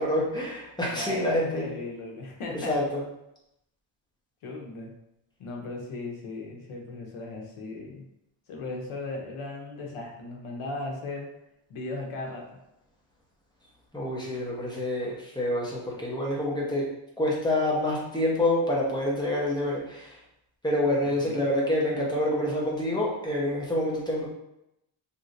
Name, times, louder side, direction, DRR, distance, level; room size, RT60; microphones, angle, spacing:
voice 1, 0.0-1.7 2.7-2.8 13.9-16.9 17.2-20.1 20.6-24.3, left 1 dB, 10° left, -4 dB, 0.9 m, -27 dB
voice 2, 0.9-2.8 4.4-4.9 5.4-8.0 8.5-11.3 11.7-12.4 21.0-21.4, left 2 dB, 75° left, 0 dB, 0.9 m, -37 dB
3.2 x 2.7 x 2.6 m, 0.84 s
cardioid pair, 110°, 50 cm